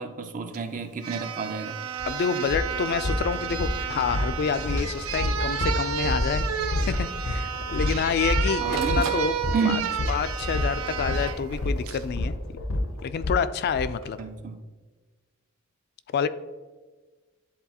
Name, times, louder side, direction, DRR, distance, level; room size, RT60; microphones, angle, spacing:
voice 1, 0.0-1.8 8.6-9.1 9.5-9.9 14.2-14.6, right 5 dB, 40° right, 0.5 m, -30 dB
sound 1, 0.5-0.6 1.0-11.4 11.9-12.0, right 8 dB, 90° right, 0.5 m, -31 dB
sound 2, 2.0-2.1 2.4-13.8, left 1 dB, 80° left, 0.7 m, -29 dB
voice 2, 2.1-9.3 9.6-9.8 10.1-12.4 13.0-14.2 16.1-16.3, left 6 dB, 50° left, 0.3 m, -28 dB
Printer, 5.2-5.3 5.6-5.7 6.1-6.2 6.9-7.1 7.7-9.9 10.7-12.1 13.8-14.2, right 3 dB, 70° right, 0.8 m, -40 dB
10.0 x 3.9 x 2.9 m
head